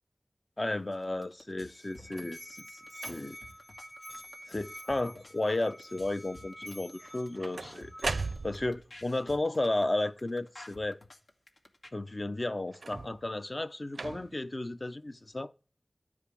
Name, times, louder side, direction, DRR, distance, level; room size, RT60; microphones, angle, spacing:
voice 1, 0.6-3.4 4.5-11.0 11.9-15.5, left 2 dB, 40° left, 0.8 m, -33 dB
sound 1, 0.9-11.9, left 1 dB, 75° left, 1.8 m, -52 dB
Musical instrument, 1.7-8.6, equal, 15° left, 1.1 m, -49 dB
sound 2, 2.0-2.4 3.0-3.5 4.1-4.5 4.7-5.3 7.0-8.9 12.7-13.3 13.9-14.5 15.3-15.4, right 3 dB, 85° right, 0.4 m, -39 dB
12.5 x 4.9 x 8.4 m
wide cardioid pair, 50°, 0 cm